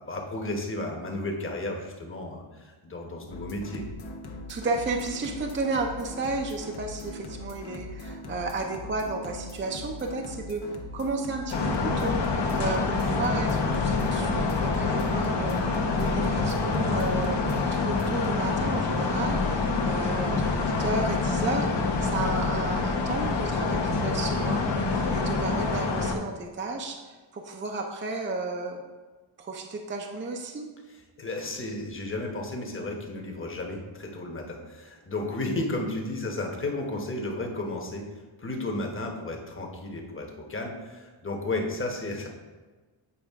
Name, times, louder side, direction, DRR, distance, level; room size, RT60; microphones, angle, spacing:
voice 1, 0.0-3.9 30.9-42.3, left 2 dB, 25° left, 1 dB, 1.1 m, -33 dB
sound 1, 3.3-18.3, left 1 dB, 85° left, 1.1 m, -41 dB
voice 2, 4.5-10.6 10.9-15.6 16.0-17.4 17.7-24.7 25.1-27.0 27.3-28.8 29.4-30.7, right 3 dB, 25° right, 2 dB, 0.6 m, -33 dB
sound 2, 11.5-26.1, left 3 dB, 60° left, 1.0 m, -26 dB
8.5 x 4.9 x 3.6 m, 1.3 s
wide cardioid pair, 135°, 48 cm